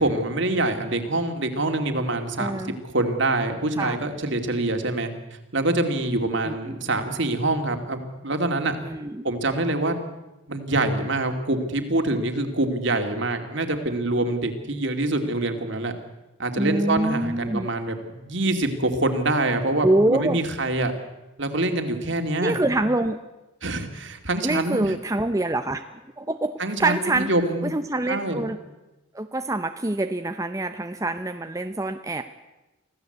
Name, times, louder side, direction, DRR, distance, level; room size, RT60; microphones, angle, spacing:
voice 1, 0.0-5.1 5.5-8.8 9.2-10.0 10.5-15.9 16.4-20.9 21.4-22.6 23.6-24.9 26.6-27.7 28.1-28.5, right 2 dB, 60° right, 6 dB, 2.6 m, -25 dB
voice 2, 2.4-2.8 3.8-4.0 6.4-6.8 8.8-9.3 16.6-17.7 19.8-20.4 22.4-23.2 24.4-25.8 26.2-26.5 26.8-27.3 27.6-28.6 29.1-32.2, right 2 dB, 15° right, 7 dB, 0.7 m, -25 dB
25.0 x 16.0 x 8.0 m, 1.0 s
head